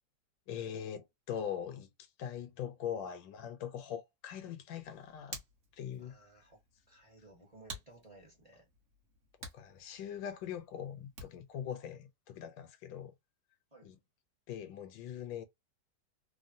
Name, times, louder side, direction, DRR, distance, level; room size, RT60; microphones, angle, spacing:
voice 1, 0.5-1.9 2.2-5.4 5.7-6.1 9.5-13.1 13.8-14.0 14.5-15.4, left 9 dB, 80° left, 1.3 m, -41 dB
Hands, 4.7-11.6, right 3 dB, 45° right, 1.0 m, -52 dB
voice 2, 6.0-8.7 13.7-13.9, right 2 dB, 20° right, 1.0 m, -59 dB
3.4 x 2.1 x 2.5 m
omnidirectional pair, 2.0 m